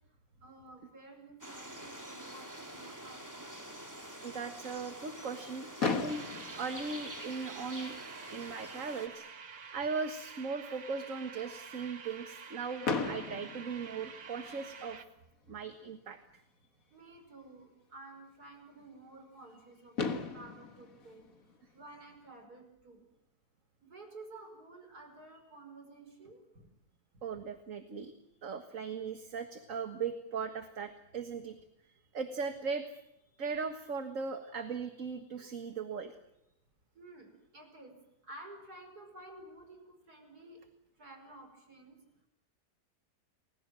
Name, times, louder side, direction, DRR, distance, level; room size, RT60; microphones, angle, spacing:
voice 1, 0.1-3.5 16.9-21.3 21.7-23.0 23.8-26.7 27.1-27.4 36.9-37.3 37.5-37.9 38.2-40.6 41.0-42.0, right 2 dB, 70° right, 5 dB, 5.8 m, -52 dB
sound 1, 1.4-9.1, right 1 dB, 10° right, 2.9 m, -47 dB
voice 2, 4.2-6.2 6.6-8.0 8.3-9.3 9.7-15.0 15.5-16.2 27.2-28.1 28.4-31.6 32.1-33.0 33.4-36.1, right 5 dB, 55° right, 7 dB, 1.9 m, -38 dB
Fireworks, 5.8-7.8 8.6-8.7 8.9-9.1 9.4-9.5 12.8-14.7 16.4-16.5 19.5-19.6 20.0-22.3, left 4 dB, 60° left, 2.2 m, -37 dB
sound 2, 6.1-15.0, right 5 dB, 90° right, 2.3 m, -49 dB
30.0 x 21.0 x 7.6 m, 0.83 s
omnidirectional pair, 1.7 m